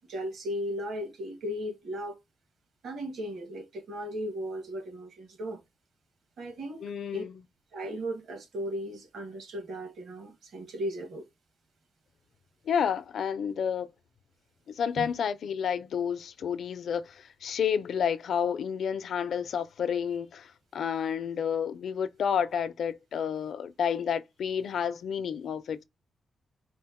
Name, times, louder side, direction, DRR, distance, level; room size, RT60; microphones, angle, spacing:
voice 1, 0.1-2.1 2.8-5.6 6.4-7.2 7.7-11.2 15.0-15.1, equal, 70° right, 1.6 m, -36 dB
voice 2, 6.8-7.4 12.7-13.9 14.7-25.8, left 7 dB, 70° left, 0.5 m, -30 dB
4.4 x 2.1 x 4.3 m
wide cardioid pair, 155°, 0 cm